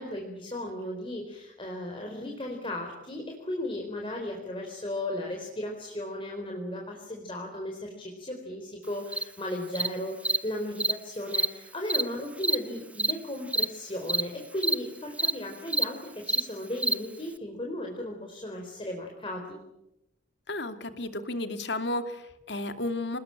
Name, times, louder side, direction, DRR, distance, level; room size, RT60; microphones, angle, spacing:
voice 1, 0.0-19.6, left 1 dB, 30° left, 1 dB, 4.2 m, -36 dB
Cricket, 9.1-9.2 9.7-9.9 10.2-10.4 10.8-10.9 11.3-11.5 11.9-12.0 12.4-12.6 13.0-13.1 13.5-13.6 14.1-14.2 14.6-14.7 15.2-15.3 15.7-15.8 16.3-16.4 16.8-16.9, right 2 dB, 5° right, 0.9 m, -25 dB
voice 2, 20.5-23.2, left 2 dB, 65° left, 9 dB, 2.6 m, -33 dB
26.5 x 20.5 x 8.9 m, 0.87 s
head